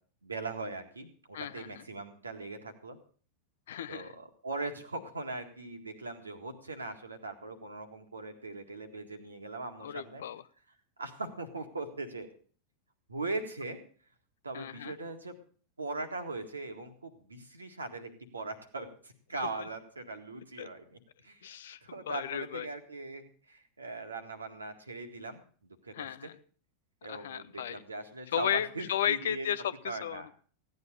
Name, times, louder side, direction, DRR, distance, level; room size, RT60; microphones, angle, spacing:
voice 1, 0.2-3.0 3.9-10.2 11.0-12.3 13.1-13.8 14.4-15.4 15.8-21.5 21.8-26.3 27.0-29.5 29.9-30.3, right 3 dB, 80° right, 6 dB, 1.8 m, -40 dB
voice 2, 1.3-1.8 3.7-4.1 9.8-10.4 14.5-14.9 20.6-20.7 21.4-21.8 22.1-22.7 25.9-26.3 27.1-27.8 28.3-30.3, left 10 dB, 60° left, 16 dB, 0.6 m, -34 dB
15.5 x 9.6 x 6.4 m, 0.43 s
figure-of-eight pair, 90°, 0 cm